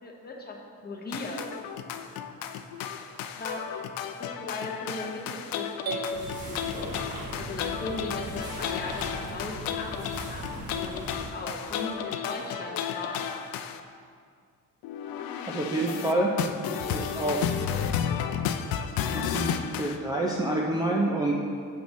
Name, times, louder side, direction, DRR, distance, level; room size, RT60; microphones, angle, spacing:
voice 1, 0.0-1.5 3.3-3.7 4.2-7.0 7.3-13.3, left 2 dB, 30° left, 0 dB, 0.8 m, -38 dB
sound 1, 1.1-13.8 14.8-20.0, left 8 dB, 80° left, 0.5 m, -33 dB
sound 2, 5.9-7.8, right 3 dB, 50° right, 0.8 m, -37 dB
sound 3, 6.1-11.3, right 1 dB, 30° right, 1.8 m, -39 dB
voice 2, 15.5-16.4 16.7-17.5 19.1-21.3, right 2 dB, 10° right, -2 dB, 0.3 m, -28 dB
6.7 x 6.6 x 3.1 m, 2.1 s
cardioid pair, 160°, 35 cm